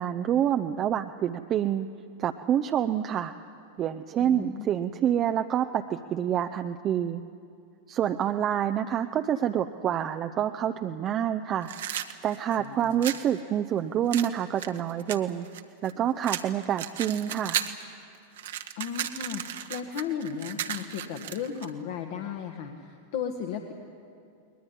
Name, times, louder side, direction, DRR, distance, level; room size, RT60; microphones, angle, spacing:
voice 1, 0.0-1.9 2.2-3.3 3.8-7.2 7.9-11.7 12.2-15.5 15.8-17.6, right 10 dB, 30° right, 6 dB, 0.7 m, -27 dB
voice 2, 4.2-4.7 12.6-12.9 18.8-23.7, left 7 dB, 50° left, 4 dB, 1.7 m, -35 dB
sound 1, 11.6-13.3 14.1-15.9 16.2-17.8 18.1-21.7, right 11 dB, 60° right, 1.2 m, -34 dB
21.0 x 20.5 x 9.9 m, 2.4 s
figure-of-eight pair, 90°, 0 cm